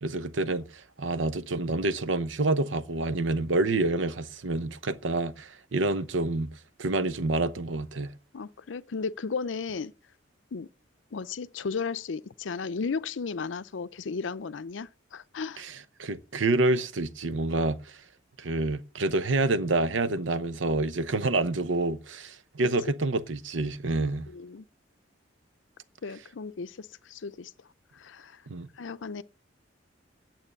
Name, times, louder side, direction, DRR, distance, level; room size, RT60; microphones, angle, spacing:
voice 1, 0.0-6.5 6.8-8.1 15.6-18.0 18.4-24.3 28.5-28.7, right 2 dB, 85° right, 0.8 m, -28 dB
voice 2, 8.3-9.9 10.5-10.7 11.1-15.6 24.3-24.6 26.0-27.5 27.9-28.4 28.8-29.2, left 5 dB, 80° left, 0.5 m, -35 dB
9.1 x 7.7 x 8.4 m
head